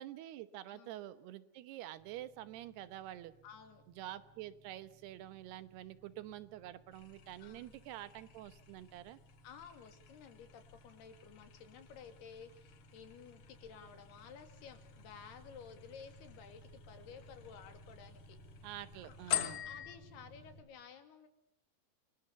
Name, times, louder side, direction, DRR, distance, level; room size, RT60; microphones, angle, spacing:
voice 1, 0.0-3.3 4.0-9.2 18.6-19.6, right 13 dB, 90° right, 14 dB, 3.2 m, -47 dB
sound 1, 2.0-20.6, right 1 dB, 30° right, 7.2 m, -60 dB
voice 2, 3.4-3.8 7.4-7.7 9.4-18.4 19.0-21.3, left 6 dB, 80° left, 8 dB, 4.6 m, -54 dB
sound 2, 6.9-20.0, left 12 dB, 65° left, 2.8 m, -47 dB
29.0 x 25.0 x 7.0 m, 0.78 s
omnidirectional pair, 4.5 m